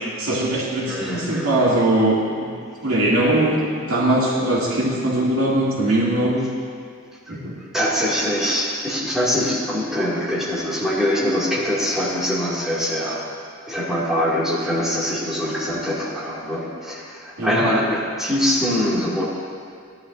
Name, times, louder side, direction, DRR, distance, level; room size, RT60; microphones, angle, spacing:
voice 1, 0.2-2.5 2.8-6.5 7.3-7.6 17.4-17.6, right 1 dB, 80° right, -6 dB, 2.5 m, -21 dB
voice 2, 0.8-1.7 7.3-7.4 7.7-13.3 13.7-19.2, equal, ahead, -9 dB, 2.3 m, -23 dB
17.0 x 10.5 x 2.6 m, 2.2 s
head